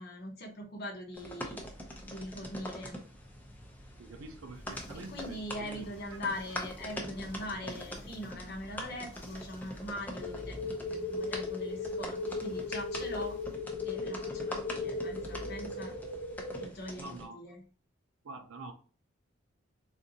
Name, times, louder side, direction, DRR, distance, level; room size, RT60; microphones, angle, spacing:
voice 1, 0.0-1.6 2.1-3.0 4.9-13.4 13.8-15.9 16.6-17.6, left 1 dB, 50° left, 1 dB, 0.8 m, -41 dB
sound 1, 1.1-17.3, equal, 10° left, 0.5 m, -44 dB
voice 2, 4.0-6.2 17.0-17.5 18.2-18.7, right 2 dB, 85° right, 5 dB, 0.5 m, -47 dB
sound 2, 4.5-13.6, left 1 dB, 70° left, 1.1 m, -57 dB
sound 3, 10.2-16.7, left 3 dB, 85° left, 0.6 m, -37 dB
3.7 x 2.6 x 2.7 m, 0.40 s
head